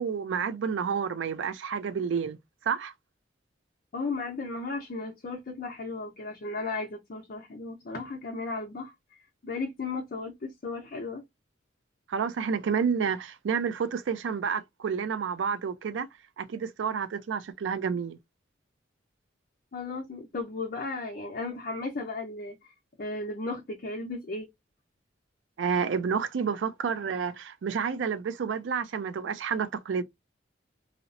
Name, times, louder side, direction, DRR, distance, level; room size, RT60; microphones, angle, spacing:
voice 1, 0.0-2.4 2.7-2.9 12.1-16.1 16.4-18.2 25.6-30.0, right 6 dB, 75° right, 0.4 m, -29 dB
voice 2, 3.9-11.2 19.7-22.7 23.0-24.5, left 3 dB, 50° left, 0.5 m, -35 dB
2.8 x 2.0 x 2.5 m
head